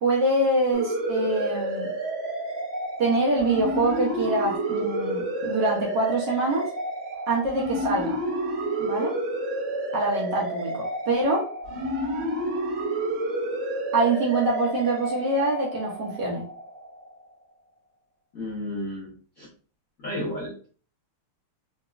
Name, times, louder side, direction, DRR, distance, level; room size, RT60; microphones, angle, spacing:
voice 1, 0.0-1.9 3.0-6.7 7.3-8.2 8.8-9.1 9.9-11.4 13.9-16.5, right 2 dB, 65° right, -2 dB, 1.2 m, -25 dB
sound 1, 0.7-17.1, right 1 dB, 45° right, 1.1 m, -30 dB
voice 2, 18.3-19.5 20.0-20.5, left 1 dB, 65° left, -6 dB, 0.8 m, -32 dB
3.9 x 2.3 x 2.3 m, 0.43 s
omnidirectional pair, 2.4 m